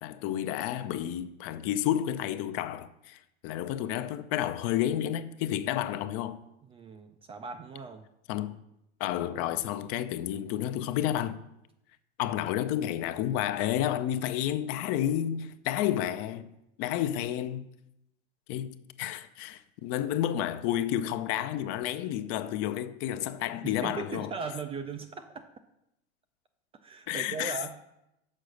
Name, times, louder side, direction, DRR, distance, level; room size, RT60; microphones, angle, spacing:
voice 1, 0.0-6.4 8.3-8.6 9.0-11.4 12.2-16.5 16.8-17.7 18.5-24.3 27.1-27.6, left 11 dB, 45° left, 0.5 m, -31 dB
voice 2, 6.6-8.1 23.6-25.5 26.8-27.8, right 5 dB, 20° right, 0.3 m, -38 dB
6.5 x 4.7 x 6.4 m
hypercardioid pair, 110°, 33 cm